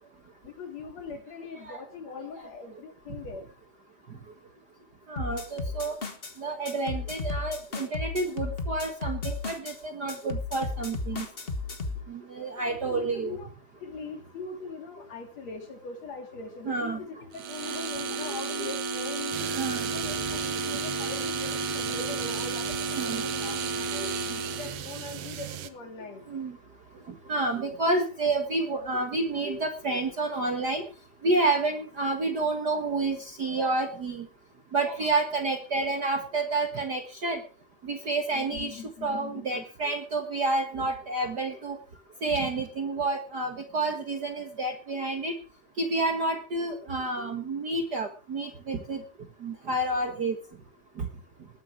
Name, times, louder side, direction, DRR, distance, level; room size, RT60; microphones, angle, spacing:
voice 1, 0.4-3.5 12.6-13.5 13.8-19.4 19.9-24.1 24.5-26.3 38.3-39.7, left 4 dB, 60° left, 5 dB, 3.8 m, -41 dB
voice 2, 5.1-6.0 6.4-11.3 12.1-13.3 16.7-17.0 18.1-18.3 19.3-19.8 23.0-23.2 24.0-24.4 26.3-26.6 27.3-30.8 31.2-34.3 34.7-37.4 37.8-41.8 42.2-45.3 45.8-49.0 49.4-50.4 51.0-51.1, right 2 dB, 40° right, 5 dB, 1.7 m, -29 dB
sound 1, 5.2-6.3 6.7-9.8 10.1-12.0, left 3 dB, 30° left, 1.2 m, -34 dB
sound 2, 17.3-24.8, right 4 dB, 80° right, 3.1 m, -32 dB
sound 3, 19.3-25.7, right 10 dB, 65° right, 1.7 m, -38 dB
20.0 x 9.5 x 4.8 m, 0.35 s
omnidirectional pair, 3.4 m